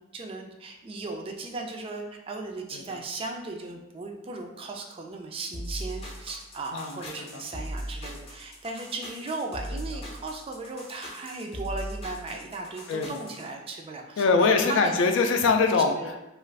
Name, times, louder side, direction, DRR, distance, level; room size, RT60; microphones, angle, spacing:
voice 1, 0.0-15.0 15.9-16.1, right 3 dB, 30° right, 2 dB, 0.3 m, -37 dB
sound 1, 5.5-13.4, equal, 30° left, 0.5 m, -38 dB
voice 2, 12.9-13.2 14.2-15.9, left 4 dB, 85° left, 5 dB, 0.4 m, -23 dB
2.4 x 2.4 x 3.2 m, 0.94 s
head